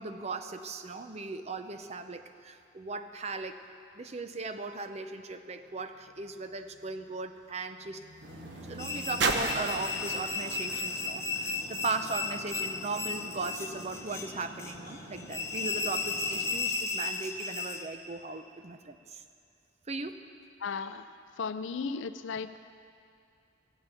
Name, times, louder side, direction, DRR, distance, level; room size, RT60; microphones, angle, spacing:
voice 1, 0.0-3.6 3.9-8.0 8.7-19.2 19.9-20.2, right 3 dB, 35° right, 9 dB, 0.6 m, -38 dB
sound 1, 5.7-12.2 13.0-13.1, right 3 dB, 65° right, 1.0 m, -37 dB
sound 2, 8.2-16.6, equal, 80° right, 2.6 m, -48 dB
sound 3, 8.8-17.9, left 4 dB, 15° left, 0.7 m, -35 dB
voice 2, 20.6-22.6, left 5 dB, 75° left, 12 dB, 0.5 m, -36 dB
16.0 x 8.4 x 8.3 m, 2.4 s
head